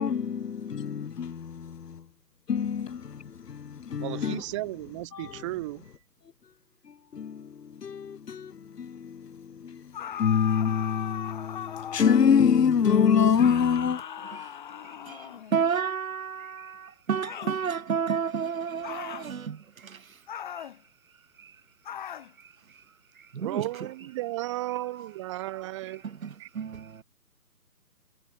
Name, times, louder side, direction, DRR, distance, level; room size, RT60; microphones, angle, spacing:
voice 1, 0.0-2.0 2.5-4.4 5.1-5.3 7.1-9.9 10.2-14.0, left 7 dB, 80° left, 1.2 m, -26 dB
voice 2, 4.0-5.9 23.4-26.0 26.4-26.5, right 18 dB, 20° right, 3.0 m, -34 dB
sound 1, 9.9-12.3 13.4-15.6 17.2-17.6 18.8-19.3 20.3-20.8 21.9-22.3, left 9 dB, 30° left, 2.4 m, -38 dB
voice 3, 15.1-19.6 19.8-20.0 23.3-23.6 26.5-27.0, right 6 dB, 55° right, 1.1 m, -30 dB
hypercardioid pair, 165°, 48 cm